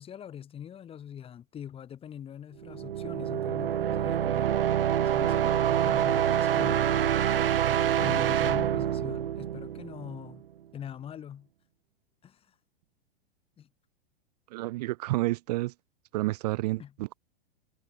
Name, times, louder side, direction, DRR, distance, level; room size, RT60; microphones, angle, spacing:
voice 1, 0.0-4.5 5.0-7.2 7.7-10.4 10.7-11.5 12.2-12.5 13.6-13.7 16.8-16.9, left 9 dB, 20° left, 1.7 m, -43 dB
sound 1, 2.6-10.3, right 10 dB, 70° right, 0.5 m, -26 dB
voice 2, 14.5-15.7 16.1-17.2, right 19 dB, 40° right, 0.9 m, -30 dB
figure-of-eight pair, 100°, 30 cm